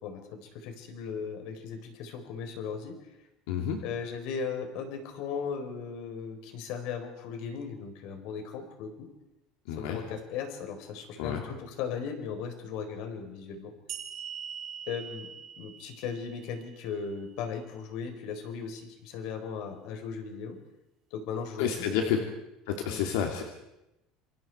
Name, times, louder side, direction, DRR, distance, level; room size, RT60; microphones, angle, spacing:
voice 1, 0.0-3.0 3.8-9.1 9.7-13.7 14.9-15.3 15.6-20.6 21.1-22.2 22.9-23.0, left 6 dB, 65° left, 6 dB, 4.3 m, -37 dB
voice 2, 3.5-3.8 9.7-10.0 11.2-11.4 21.6-22.2 22.7-23.4, left 8 dB, 85° left, 3 dB, 2.9 m, -29 dB
sound 1, 13.9-17.3, right 8 dB, 45° right, 3.1 m, -43 dB
27.5 x 25.5 x 4.7 m, 0.89 s
cardioid pair, 155°, 0 cm